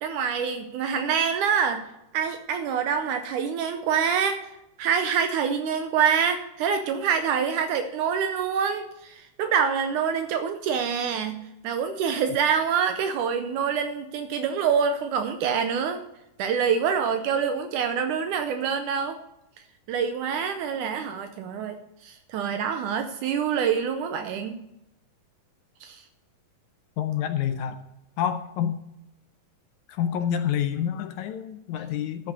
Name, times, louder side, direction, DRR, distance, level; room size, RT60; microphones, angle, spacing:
voice 1, 0.0-1.9 2.1-4.5 4.8-16.0 16.4-19.2 19.9-24.6 25.8-26.0, right 7 dB, 80° right, 7 dB, 2.1 m, -26 dB
voice 2, 27.0-27.8 28.2-28.8 29.9-32.3, left 9 dB, 75° left, 9 dB, 1.8 m, -28 dB
13.0 x 5.2 x 6.7 m, 0.88 s
omnidirectional pair, 3.9 m